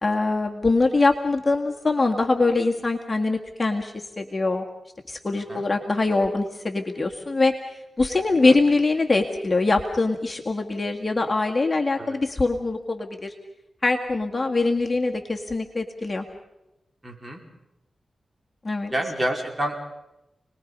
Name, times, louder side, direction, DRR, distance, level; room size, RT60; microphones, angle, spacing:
voice 1, 0.0-4.6 5.1-7.5 8.0-13.3 13.8-16.2 18.6-18.9, left 3 dB, 30° left, 2 dB, 1.9 m, -23 dB
voice 2, 17.0-17.4 18.9-19.8, right 1 dB, 20° right, 1 dB, 4.8 m, -28 dB
29.5 x 20.5 x 5.5 m, 0.91 s
cardioid pair, 70°, 0 cm